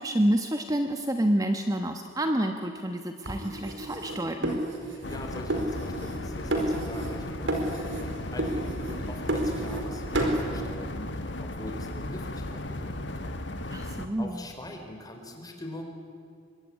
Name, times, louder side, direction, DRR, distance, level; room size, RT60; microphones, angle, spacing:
voice 1, 0.0-4.6 13.7-14.4, right 1 dB, 20° right, 5 dB, 1.1 m, -28 dB
sound 1, 3.3-5.2 5.5-6.2 6.5-7.2 7.5-8.1 8.4-9.9 10.1-10.4, right 1 dB, 85° right, 4.5 m, -30 dB
voice 2, 4.8-13.9 14.2-15.8, left 1 dB, 20° left, 3 dB, 4.0 m, -43 dB
sound 2, 5.0-14.1, left 1 dB, 70° left, 1.7 m, -36 dB
25.5 x 23.0 x 9.7 m, 2.4 s
head